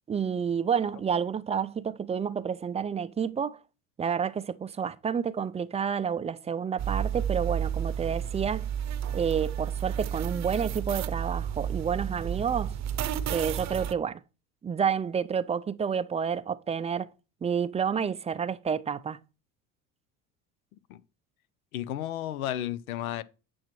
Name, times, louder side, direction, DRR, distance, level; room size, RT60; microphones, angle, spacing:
voice 1, 0.1-3.6 4.0-8.7 9.1-12.8 13.3-14.2 14.6-17.1 17.4-19.2, right 7 dB, 15° right, 0.4 m, -29 dB
sound 1, 6.8-13.9, right 9 dB, 40° right, 0.8 m, -31 dB
voice 2, 21.7-23.2, left 12 dB, 90° left, 0.7 m, -33 dB
8.8 x 6.1 x 3.1 m
hypercardioid pair, 80°, 42 cm